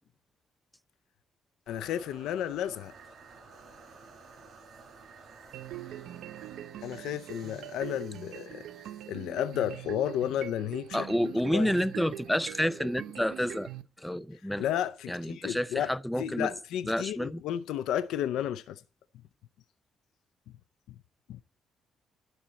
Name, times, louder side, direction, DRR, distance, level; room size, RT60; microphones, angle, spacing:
voice 1, 1.7-2.9 6.8-8.7 9.1-11.1 11.5-11.7 14.6-15.9 16.2-18.8 21.3-21.4, left 10 dB, 85° left, 0.5 m, -32 dB
sound 1, 1.7-10.7, right 4 dB, 60° right, 5.9 m, -54 dB
sound 2, 5.5-13.8, right 11 dB, 80° right, 0.7 m, -43 dB
voice 2, 10.9-13.7 14.0-14.6 15.1-16.5 16.9-17.4, equal, 5° left, 0.4 m, -29 dB
12.0 x 4.2 x 8.2 m
cardioid pair, 90°, 0 cm